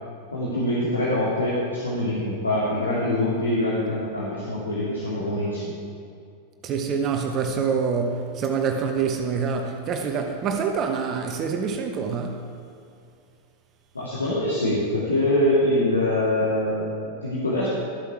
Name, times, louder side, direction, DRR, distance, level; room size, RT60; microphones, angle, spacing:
voice 1, 0.3-5.7 13.9-17.7, left 1 dB, 75° left, 2.1 m, -24 dB
voice 2, 6.6-12.4, right 6 dB, 30° right, 0.9 m, -26 dB
13.0 x 8.2 x 4.8 m
figure-of-eight pair, 90°, 0 cm